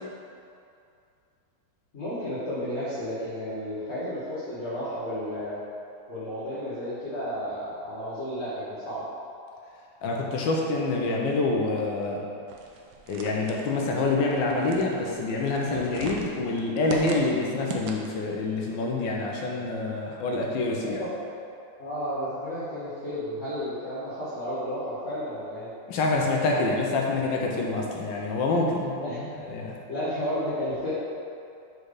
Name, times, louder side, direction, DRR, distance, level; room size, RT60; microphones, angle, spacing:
voice 1, 1.9-5.6 6.1-9.0 20.8-21.3 21.8-25.7 28.9-29.5 29.9-30.9, equal, 40° left, -11 dB, 1.3 m, -32 dB
voice 2, 10.0-12.2 13.1-21.0 25.9-29.0 29.5-29.8, left 3 dB, 70° left, -1 dB, 1.4 m, -26 dB
sound 1, 12.5-18.3, right 5 dB, 75° right, 1.3 m, -40 dB
5.0 x 4.5 x 4.8 m, 2.5 s
omnidirectional pair, 2.2 m